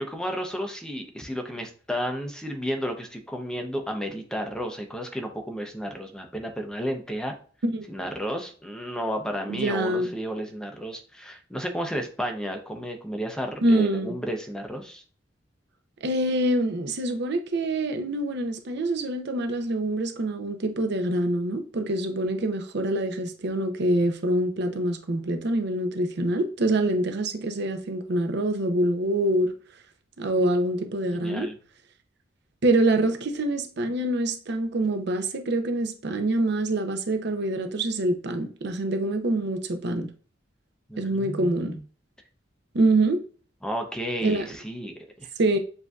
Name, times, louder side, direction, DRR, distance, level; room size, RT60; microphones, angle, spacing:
voice 1, 0.0-7.4 7.9-15.0 31.1-31.5 40.9-41.8 43.6-45.3, equal, 5° left, 0.6 m, -32 dB
voice 2, 9.5-10.1 13.6-14.1 16.0-29.5 30.2-31.5 32.6-40.1 41.0-41.8 42.7-43.2 44.2-44.5 45.4-45.6, right 1 dB, 65° right, 0.6 m, -25 dB
7.2 x 2.6 x 2.3 m
head